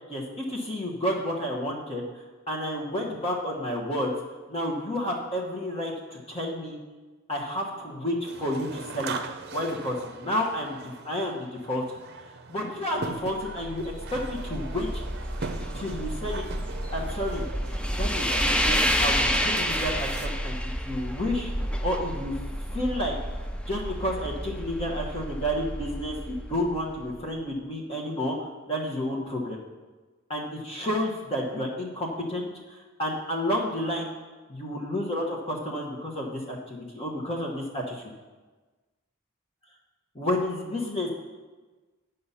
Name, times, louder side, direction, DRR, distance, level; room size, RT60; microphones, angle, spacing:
voice 1, 0.1-2.0 2.5-4.1 4.5-6.8 7.3-9.1 9.5-12.0 12.5-15.0 15.7-16.5 16.9-17.5 18.0-20.6 20.9-21.5 21.8-22.4 22.7-23.2 23.7-29.6 30.3-34.1 34.5-38.0 40.1-41.1, left 1 dB, 30° left, -2 dB, 1.1 m, -30 dB
sound 1, 8.3-20.3, right 4 dB, 55° right, 0.6 m, -40 dB
sound 2, 13.3-27.3, equal, 5° left, 0.4 m, -30 dB
8.6 x 5.4 x 5.5 m, 1.3 s
head